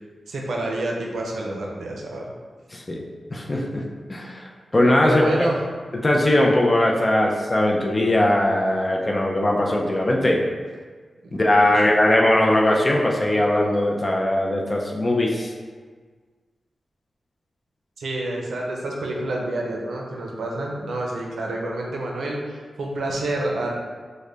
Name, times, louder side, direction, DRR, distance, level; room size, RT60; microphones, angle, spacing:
voice 1, 0.3-2.3 5.0-5.6 11.2-11.3 18.0-23.7, right 2 dB, 85° right, -1 dB, 0.5 m, -28 dB
voice 2, 2.7-3.0 3.3-3.8 4.1-5.5 6.0-10.4 11.4-15.5, left 1 dB, 20° left, -1 dB, 0.4 m, -20 dB
3.3 x 2.1 x 3.8 m, 1.6 s
wide cardioid pair, 170°, 0 cm